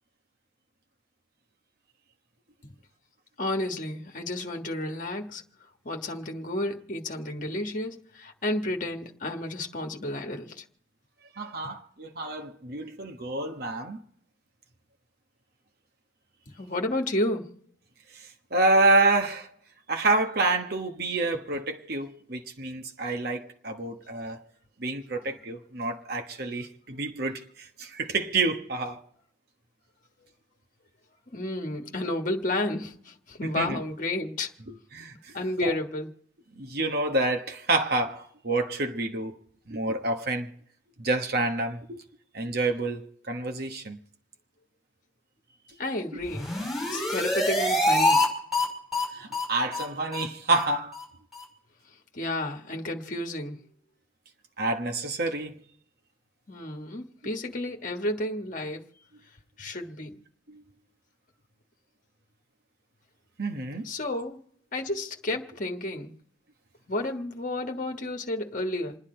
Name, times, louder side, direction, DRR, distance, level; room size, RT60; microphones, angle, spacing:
voice 1, 3.4-5.4 5.8-10.6 16.5-17.5 31.3-34.5 35.3-36.1 45.8-46.5 46.9-48.2 52.1-53.6 56.5-58.8 59.6-60.2 63.8-64.4 64.7-66.1 66.9-69.0, left 1 dB, 45° left, 1.5 m, -31 dB
voice 2, 11.4-14.0 18.1-19.5 19.9-24.4 24.8-29.0 33.4-33.8 34.7-35.3 35.6-35.8 36.6-39.3 39.7-40.5 41.0-42.0 42.3-44.0 49.1-51.0 54.6-55.6 60.5-60.6 63.4-63.9, right 2 dB, 55° right, 1.3 m, -28 dB
sound 1, 46.2-48.3 48.5-48.6 48.9-49.0 49.3-49.4 49.7-49.8 50.1-50.2 50.5-50.6 50.9-51.0 51.3-51.4, left 1 dB, ahead, 5.4 m, -25 dB
28.5 x 9.9 x 4.4 m
head